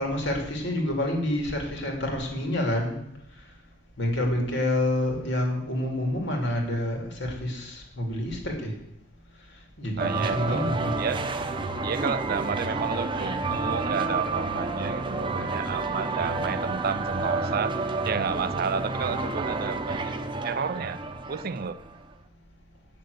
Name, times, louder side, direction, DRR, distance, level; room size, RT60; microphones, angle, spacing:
voice 1, 0.0-3.0 4.0-8.7 9.8-11.0 15.3-15.5 18.7-18.8 19.1-19.2, left 1 dB, 65° left, 2 dB, 2.8 m, -28 dB
voice 2, 9.9-10.7 11.0-11.2 11.8-17.7 18.1-20.2 20.4-21.0 21.3-21.8, right 6 dB, 50° right, 16 dB, 0.4 m, -31 dB
sound 1, 10.0-22.0, right 3 dB, 25° right, 0.8 m, -30 dB
9.1 x 6.6 x 7.9 m, 0.80 s
head